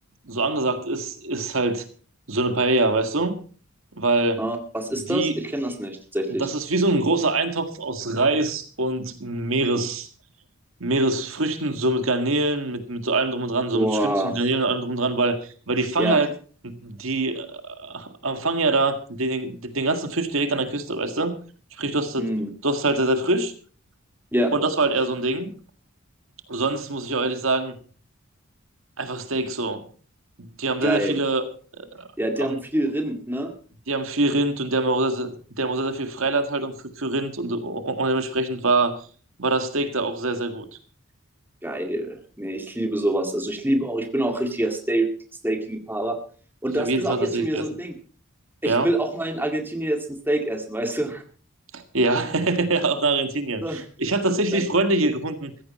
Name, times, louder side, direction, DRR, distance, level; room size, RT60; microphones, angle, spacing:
voice 1, 0.3-1.8 2.3-3.3 4.0-4.4 5.1-5.3 6.4-10.1 10.8-16.3 16.6-21.4 21.7-22.3 22.6-23.5 24.5-25.5 26.5-27.8 29.0-29.8 30.4-31.4 31.8-32.1 32.4-32.6 33.9-39.0 39.4-40.7 46.8-47.6 48.6-48.9 51.7-55.5, right 2 dB, 75° right, 8 dB, 1.9 m, -24 dB
voice 2, 4.4-6.5 13.7-14.4 16.0-16.2 22.2-22.5 24.3-24.5 30.8-31.2 32.2-33.5 41.6-45.1 45.4-46.2 46.6-47.9 48.6-51.2 53.6-53.8 54.5-54.6, right 1 dB, 10° right, 5 dB, 2.1 m, -26 dB
15.0 x 15.0 x 4.3 m, 0.41 s
head